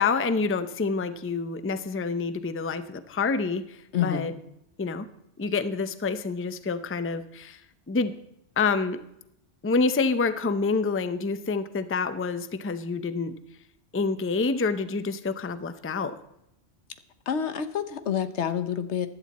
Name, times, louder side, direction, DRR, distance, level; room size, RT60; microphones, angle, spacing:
voice 1, 0.0-3.6 4.0-4.3 4.8-5.1 5.4-7.6 7.9-8.1 8.6-9.0 9.6-13.3 13.9-16.1, left 4 dB, 20° left, 12 dB, 0.4 m, -27 dB
voice 2, 3.9-4.3 17.3-19.1, left 8 dB, 85° left, 11 dB, 1.2 m, -28 dB
15.5 x 11.0 x 4.1 m, 0.80 s
omnidirectional pair, 1.1 m